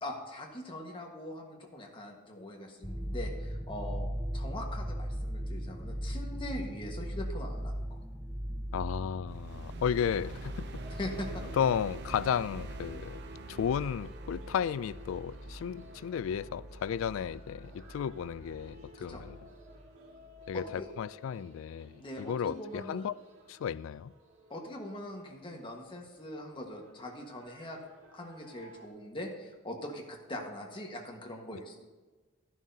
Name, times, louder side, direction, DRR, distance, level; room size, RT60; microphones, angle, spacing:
voice 1, 0.0-4.1 4.3-8.0 10.9-11.4 19.0-19.2 20.5-20.9 22.0-23.1 24.5-27.8 28.1-31.8, left 1 dB, 25° left, 1.5 m, -42 dB
sound 1, 2.8-19.9 20.2-20.5, equal, 5° right, 0.5 m, -40 dB
voice 2, 8.7-10.5 11.5-13.2 13.5-19.4 20.5-23.1 23.5-24.1, left 8 dB, 85° left, 0.3 m, -33 dB
sound 2, 9.3-19.7, right 3 dB, 60° right, 0.6 m, -48 dB
sound 3, 10.1-28.9, left 2 dB, 80° right, 1.8 m, -56 dB
12.5 x 11.0 x 2.8 m
head